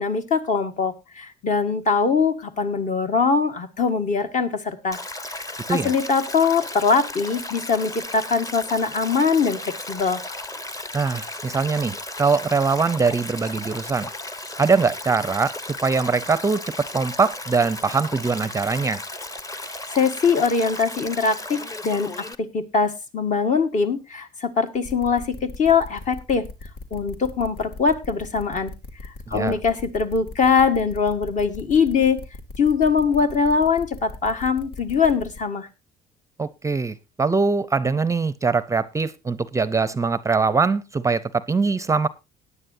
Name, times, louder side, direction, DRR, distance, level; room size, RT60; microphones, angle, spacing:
voice 1, 0.0-5.0 5.3-5.4 5.7-10.2 19.9-22.1 22.5-26.4 26.9-28.7 29.0-32.2 32.6-35.7, left 5 dB, 45° left, 7 dB, 1.7 m, -22 dB
Stream, 4.9-22.4, left 2 dB, 20° left, 1.0 m, -35 dB
voice 2, 10.9-14.1 14.6-19.0 29.3-29.6 36.4-42.1, right 4 dB, 20° right, 17 dB, 0.6 m, -22 dB
sound 1, 24.8-35.4, left 2 dB, 70° left, 2.4 m, -39 dB
18.0 x 9.7 x 2.7 m, 0.25 s
cardioid pair, 110°, 17 cm